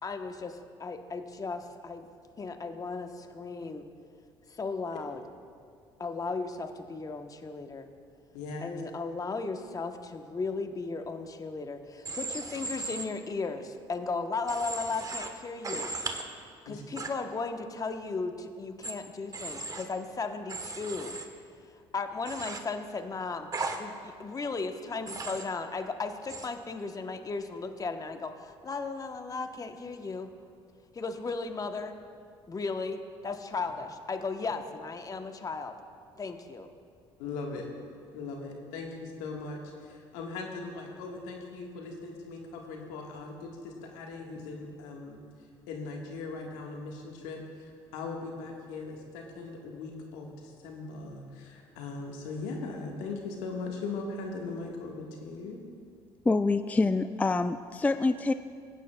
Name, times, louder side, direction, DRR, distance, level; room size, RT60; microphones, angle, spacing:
voice 1, 0.0-2.1 2.4-3.9 4.5-5.2 6.0-7.9 8.6-15.9 16.7-21.2 21.9-23.5 23.8-30.3 30.9-32.0 32.5-35.7 36.2-36.7, left 4 dB, 30° left, 6 dB, 0.9 m, -36 dB
voice 2, 8.3-8.8 16.7-16.8 37.2-37.7 38.1-45.2 45.7-47.6 47.9-55.6, left 3 dB, 80° left, 1 dB, 1.4 m, -39 dB
Human voice / Train, 12.0-13.0 14.5-15.3 15.6-16.2 17.0-17.1 18.8-18.9 19.3-19.8 20.5-21.2 22.2-22.6 23.5-23.8 25.1-25.4 26.3-26.5, right 3 dB, 30° right, 1.0 m, -36 dB
voice 3, 56.2-58.3, left 3 dB, 15° left, 11 dB, 0.3 m, -26 dB
20.5 x 9.2 x 2.2 m, 2.3 s
hypercardioid pair, 65°, 12 cm